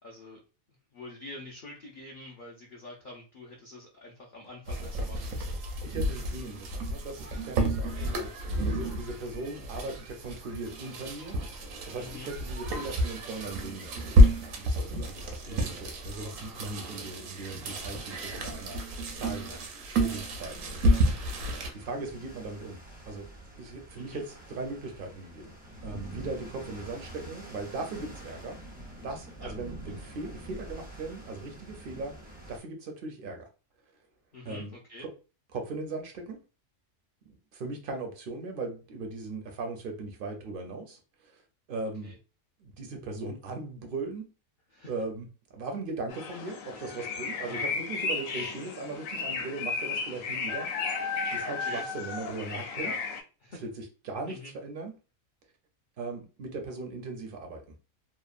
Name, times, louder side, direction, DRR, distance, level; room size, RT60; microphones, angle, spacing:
voice 1, 0.0-0.4 0.9-5.5 7.9-8.1 9.3-9.7 12.0-12.3 15.4-15.7 19.3-19.6 20.9-21.0 24.0-24.2 29.4-29.5 34.3-35.1 42.0-42.2 44.7-44.9 47.3-47.7 51.6-51.9 52.8-53.0 53.4-53.7 54.3-54.5, left 2 dB, 60° left, -2 dB, 0.5 m, -46 dB
sound 1, 4.7-21.7, equal, 75° right, 1.0 m, -29 dB
voice 2, 5.8-8.3 8.7-20.6 21.7-23.3 23.6-28.6 29.0-32.1 32.5-33.5 34.4-34.7 35.0-35.1 35.5-36.4 37.3-41.4 41.7-42.1 42.6-44.3 44.9-51.0 51.3-52.9 53.6-54.9 56.0-57.8, right 3 dB, 55° right, 4 dB, 0.6 m, -39 dB
sound 2, 20.3-32.6, right 1 dB, 15° right, 0.4 m, -46 dB
sound 3, 46.1-53.2, left 4 dB, 75° left, 0.9 m, -34 dB
2.9 x 2.1 x 2.4 m, 0.33 s
omnidirectional pair, 1.4 m